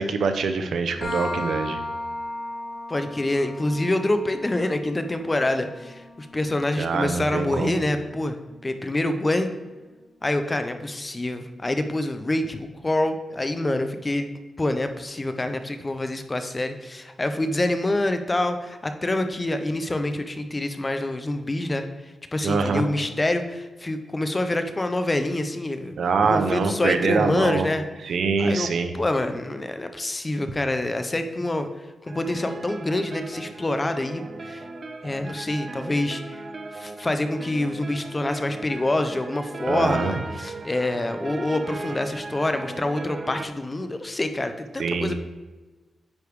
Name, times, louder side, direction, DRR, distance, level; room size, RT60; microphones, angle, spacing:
voice 1, 0.0-1.8 6.8-7.8 22.4-22.8 26.0-27.7 28.0-28.9 39.7-40.1 44.8-45.2, right 4 dB, 70° right, 7 dB, 0.6 m, -24 dB
sound 1, 1.0-8.4, left 1 dB, 50° left, 1.7 m, -37 dB
voice 2, 2.9-8.4 8.6-9.5 10.2-14.3 14.6-26.0 26.3-27.8 28.4-34.7 35.0-36.4 36.7-45.2, left 1 dB, 20° left, 8 dB, 0.5 m, -26 dB
sound 2, 32.1-43.5, right 3 dB, 35° right, 0.4 m, -37 dB
9.5 x 3.4 x 4.7 m, 1.2 s
wide cardioid pair, 155°, 0 cm